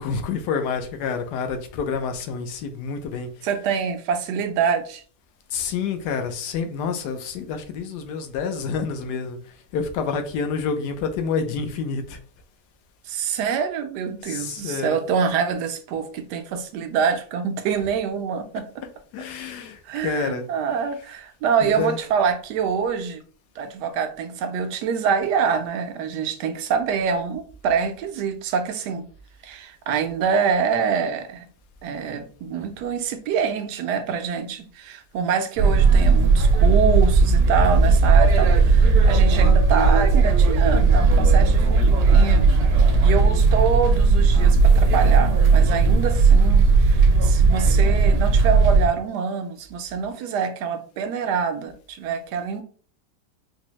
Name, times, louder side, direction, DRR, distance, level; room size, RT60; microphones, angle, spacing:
voice 1, 0.0-3.3 5.5-12.2 14.2-15.0 19.1-20.4 21.6-22.0, left 5 dB, 85° left, 7 dB, 1.2 m, -28 dB
voice 2, 3.4-5.0 13.1-18.8 19.9-23.2 23.6-29.1 29.4-31.5 31.8-42.5 42.8-52.6, right 6 dB, 85° right, 8 dB, 1.2 m, -25 dB
sound 1, 35.6-48.9, right 4 dB, 65° right, 1.1 m, -16 dB
4.4 x 2.0 x 2.9 m, 0.43 s
omnidirectional pair, 1.7 m